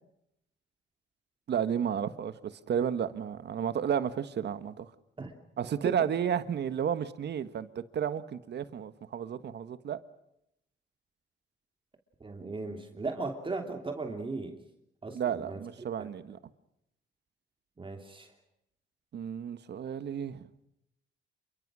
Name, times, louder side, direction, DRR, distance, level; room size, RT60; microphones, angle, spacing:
voice 1, 1.5-4.9 5.6-10.0 15.1-16.4 19.1-20.5, right 8 dB, 60° right, 12 dB, 1.5 m, -32 dB
voice 2, 12.2-14.6 15.0-15.6 16.0-16.1 17.8-18.3, right 3 dB, 25° right, 4 dB, 3.0 m, -37 dB
28.5 x 23.5 x 6.3 m, 0.80 s
cardioid pair, 90°, 20 cm